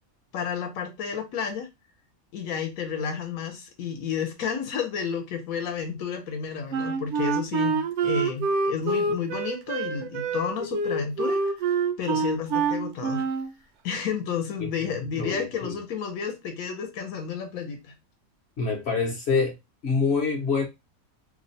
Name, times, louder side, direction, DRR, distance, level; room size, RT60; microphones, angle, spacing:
voice 1, 0.3-1.7 2.3-11.6 12.0-13.2 13.8-17.9, left 7 dB, 80° left, 1.2 m, -31 dB
Wind instrument woodwind instrument, 6.7-13.5, right 4 dB, 65° right, 0.8 m, -26 dB
voice 2, 15.2-15.7 18.6-19.5 19.8-20.6, left 4 dB, 55° left, 0.9 m, -26 dB
2.9 x 2.0 x 3.9 m
omnidirectional pair, 1.5 m